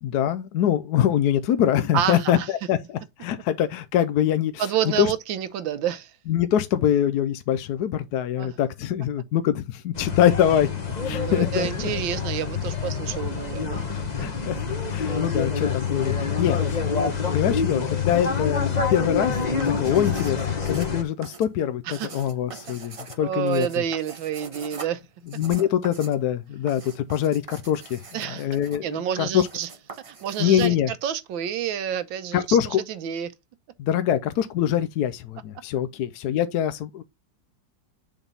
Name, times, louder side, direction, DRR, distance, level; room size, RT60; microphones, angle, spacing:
voice 1, 0.0-4.6 5.0-5.1 6.3-10.7 11.0-11.9 14.2-14.6 14.9-16.8 17.3-19.4 19.8-20.4 20.7-23.7 25.4-28.0 28.3-29.5 30.4-30.9 32.3-32.8 33.8-37.0, left 10 dB, 70° left, 1.0 m, -24 dB
voice 2, 1.9-2.5 4.6-6.1 8.4-8.5 11.0-13.9 14.2-14.5 16.1-16.4 21.9-22.2 23.2-25.0 28.1-28.5 28.8-29.7 30.1-33.3, right 9 dB, 85° right, 1.6 m, -29 dB
sound 1, 9.9-21.0, left 5 dB, 30° left, 0.9 m, -27 dB
sound 2, 19.5-30.7, right 4 dB, 55° right, 0.3 m, -43 dB
7.1 x 3.5 x 5.4 m
omnidirectional pair, 2.1 m